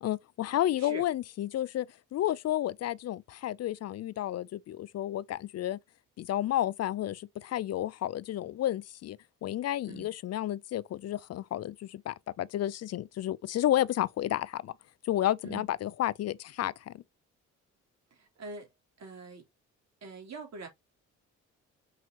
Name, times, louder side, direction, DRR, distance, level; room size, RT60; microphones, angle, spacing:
voice 1, 0.0-1.9 2.1-5.8 6.2-14.7 15.0-17.0, left 13 dB, 55° left, 0.5 m, -31 dB
voice 2, 18.1-18.7 19.0-19.4 20.0-20.7, right 3 dB, 60° right, 3.3 m, -43 dB
6.0 x 5.6 x 2.9 m
cardioid pair, 90°, 30 cm